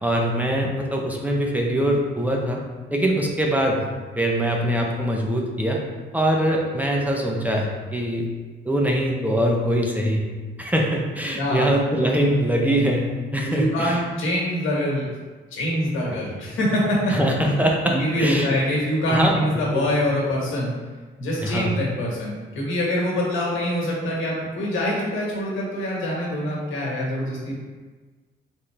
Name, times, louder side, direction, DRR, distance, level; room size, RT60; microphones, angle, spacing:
voice 1, 0.0-2.6 2.9-3.9 4.2-5.8 6.1-8.3 8.6-10.3 10.6-14.0 17.1-18.5 19.1-19.9 21.4-21.8, right 1 dB, 10° right, -1 dB, 0.7 m, -23 dB
voice 2, 11.4-11.7 13.5-15.1 15.5-17.1 17.9-20.7 21.2-27.5, left 1 dB, 80° left, -3 dB, 1.4 m, -24 dB
4.1 x 3.7 x 3.3 m, 1.3 s
cardioid pair, 90°, 20 cm